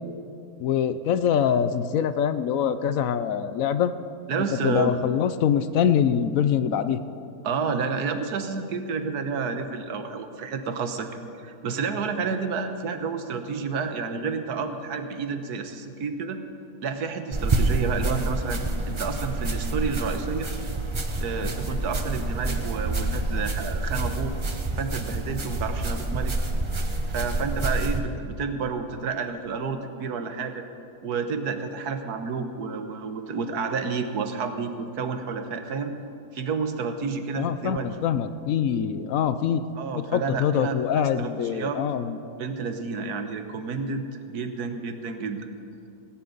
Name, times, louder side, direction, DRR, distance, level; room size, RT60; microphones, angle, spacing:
voice 1, 0.6-3.9 4.6-7.0 37.3-39.6 40.1-42.2, left 8 dB, 65° left, 12 dB, 0.9 m, -24 dB
voice 2, 4.3-4.9 7.4-11.1 11.4-16.4 16.8-18.6 18.9-20.5 21.2-24.3 24.7-26.3 27.1-30.7 31.0-35.9 36.3-37.9 39.8-41.8 42.4-44.1 44.3-45.4, right 5 dB, 70° right, 7 dB, 1.6 m, -30 dB
sound 1, 17.3-28.0, right 2 dB, 25° right, 0.7 m, -28 dB
18.5 x 17.5 x 4.0 m, 2.8 s
omnidirectional pair, 1.7 m